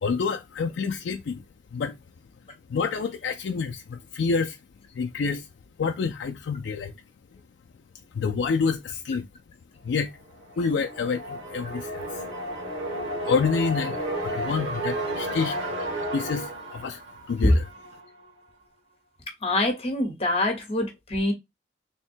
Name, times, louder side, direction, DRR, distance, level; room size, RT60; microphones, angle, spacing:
voice 1, 0.0-1.4 1.7-2.0 2.7-4.6 4.9-5.5 5.8-6.9 8.1-9.3 9.8-10.1 10.6-12.2 13.3-14.0 14.2-15.6 16.1-17.0 17.3-17.6, left 5 dB, 80° left, 0.4 m, -27 dB
sound 1, 10.3-18.1, right 1 dB, 85° right, 1.5 m, -33 dB
voice 2, 19.4-21.3, left 1 dB, 35° left, 1.0 m, -24 dB
3.5 x 2.2 x 4.3 m
head